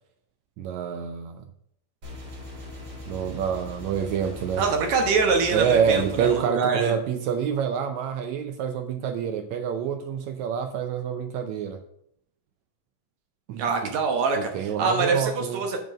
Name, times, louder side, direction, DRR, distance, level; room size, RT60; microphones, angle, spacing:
voice 1, 0.6-1.4 3.1-4.6 5.5-11.8 13.5-14.0 14.3-15.6, right 7 dB, 80° right, 8 dB, 1.6 m, -27 dB
sound 1, 2.0-6.4, left 2 dB, 35° right, 2.0 m, -40 dB
voice 2, 4.6-6.9 13.6-15.8, right 4 dB, 65° right, 4 dB, 2.1 m, -24 dB
7.2 x 5.6 x 5.1 m, 0.73 s
omnidirectional pair, 3.9 m